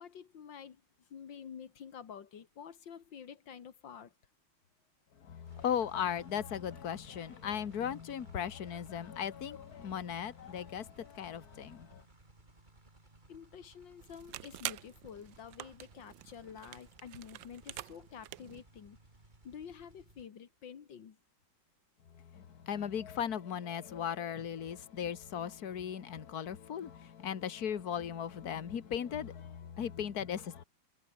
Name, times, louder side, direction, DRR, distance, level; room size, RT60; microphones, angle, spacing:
voice 1, 0.0-4.1 13.3-19.0 19.4-21.2, left 7 dB, 65° left, 2.4 m, -49 dB
voice 2, 5.2-12.0 22.1-30.6, left 8 dB, 50° left, 1.9 m, -37 dB
sound 1, 5.5-20.3, right 2 dB, 20° right, 3.3 m, -61 dB
sound 2, 14.0-18.6, right 15 dB, 75° right, 1.3 m, -46 dB
omnidirectional pair, 2.2 m